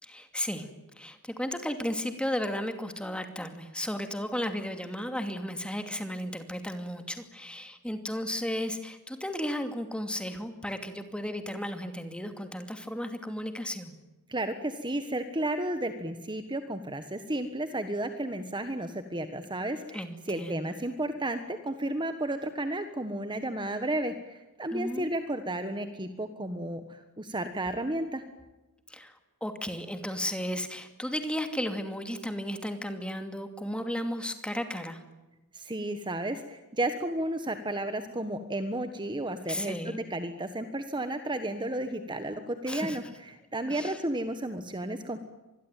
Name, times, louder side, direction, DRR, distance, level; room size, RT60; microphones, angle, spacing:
voice 1, 0.0-0.7 1.0-14.0 19.9-20.8 24.7-25.1 28.9-35.0 39.5-40.0 42.6-43.0 43.7-44.0, equal, 5° left, 7 dB, 2.5 m, -34 dB
voice 2, 14.3-28.2 35.5-45.2, right 1 dB, 20° right, 9 dB, 1.4 m, -33 dB
25.5 x 21.0 x 9.2 m, 1.1 s
head